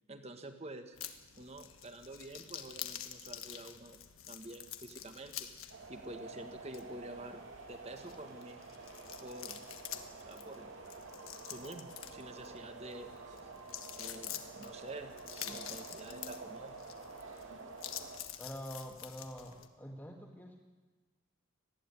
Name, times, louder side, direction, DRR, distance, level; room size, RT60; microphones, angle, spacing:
voice 1, 0.1-1.0 1.4-4.0 4.2-5.5 5.9-7.4 7.7-8.6 9.2-9.7 10.3-10.7 11.5-13.2 14.0-16.8, right 1 dB, 30° right, 7 dB, 1.7 m, -48 dB
sound 1, 0.9-19.7, left 10 dB, 80° left, 1.5 m, -48 dB
sound 2, 5.7-18.2, right 3 dB, 65° right, 2.7 m, -49 dB
voice 2, 18.4-20.6, equal, 10° left, -3 dB, 1.8 m, -46 dB
19.5 x 15.0 x 9.8 m, 1.2 s
head